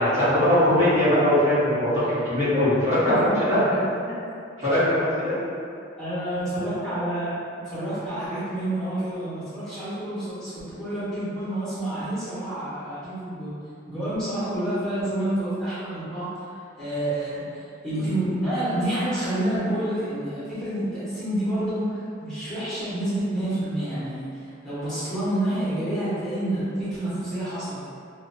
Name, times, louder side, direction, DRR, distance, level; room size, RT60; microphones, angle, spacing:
voice 1, 0.0-3.6 4.6-5.3, left 1 dB, 35° right, -13 dB, 1.2 m, -21 dB
voice 2, 3.0-3.8 6.0-7.3 7.6-10.5 10.8-13.5 13.9-16.5 16.8-27.9, right 1 dB, 5° left, -13 dB, 1.1 m, -28 dB
2.7 x 2.2 x 2.6 m, 2.4 s
head